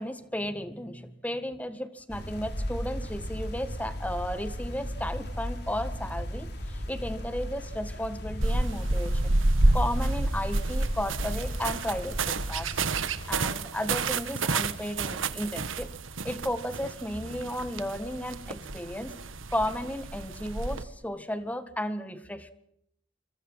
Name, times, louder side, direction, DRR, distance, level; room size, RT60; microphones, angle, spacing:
voice 1, 0.0-9.4 9.7-12.8 13.2-15.9 16.2-19.1 19.5-22.5, left 1 dB, 10° left, 11 dB, 1.7 m, -34 dB
sound 1, 2.1-13.5, equal, 55° left, 6.7 m, -36 dB
sound 2, 8.4-20.8, right 2 dB, 85° right, 1.5 m, -29 dB
26.0 x 25.5 x 5.6 m, 0.73 s
head